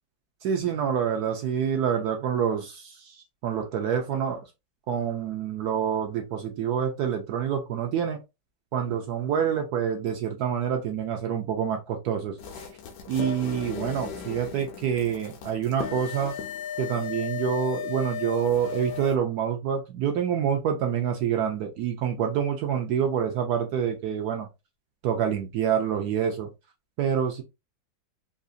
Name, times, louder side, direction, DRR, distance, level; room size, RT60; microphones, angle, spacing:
voice 1, 0.4-3.1 3.4-4.4 4.9-8.2 8.7-12.3 13.1-16.3 16.8-24.5 25.0-26.5 27.0-27.4, right 8 dB, 75° right, 0.9 m, -27 dB
sound 1, 12.4-19.2, left 7 dB, 70° left, 1.2 m, -36 dB
3.8 x 2.4 x 2.5 m
omnidirectional pair, 2.1 m